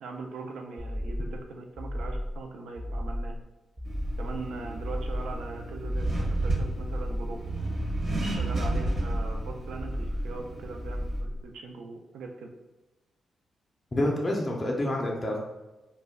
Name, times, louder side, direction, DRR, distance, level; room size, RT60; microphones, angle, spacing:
voice 1, 0.0-3.4 4.2-7.5 8.4-12.5, right 3 dB, 90° right, 3 dB, 0.3 m, -40 dB
sound 1, 0.8-1.4 1.8-2.4 2.8-3.4 3.8-4.4 4.8-5.4 5.8-6.4 6.8-7.4 7.8-8.4 8.8-9.4 9.8-10.4 10.8-11.4, equal, 20° right, 0.5 m, -34 dB
Accelerating revving vroom, 3.9-11.2, right 2 dB, 55° right, 0.7 m, -32 dB
voice 2, 13.9-15.4, left 1 dB, 30° left, -2 dB, 0.4 m, -27 dB
2.2 x 2.1 x 3.4 m, 1.1 s
cardioid pair, 90°, 0 cm